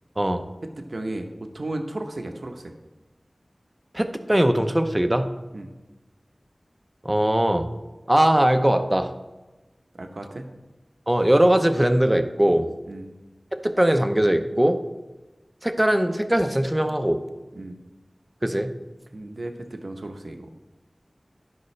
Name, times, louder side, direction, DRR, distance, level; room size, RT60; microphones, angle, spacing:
voice 1, 0.8-1.3 1.5-2.7 5.5-5.7 9.9-10.5 12.9-13.1 17.6-17.8 19.1-20.5, right 2 dB, 75° right, 5 dB, 0.8 m, -34 dB
voice 2, 3.9-5.3 7.0-7.7 8.1-9.1 11.1-12.7 13.5-14.8 15.6-17.2 18.4-18.7, right 1 dB, 20° right, 7 dB, 0.7 m, -20 dB
12.0 x 5.4 x 3.2 m, 1.1 s
wide cardioid pair, 50°, 0 cm